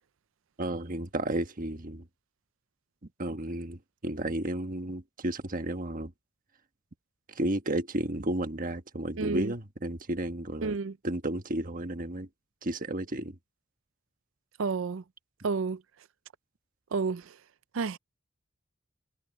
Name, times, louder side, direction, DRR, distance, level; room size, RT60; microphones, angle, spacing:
voice 1, 0.6-2.1 3.2-6.1 7.3-10.8 11.0-12.3 12.6-13.4, right 1 dB, 40° right, 1.4 m, -32 dB
voice 2, 9.2-9.5 10.6-10.9 14.6-15.0 15.4-15.8 16.9-17.4 17.7-18.0, right 4 dB, 70° right, 0.5 m, -30 dB
head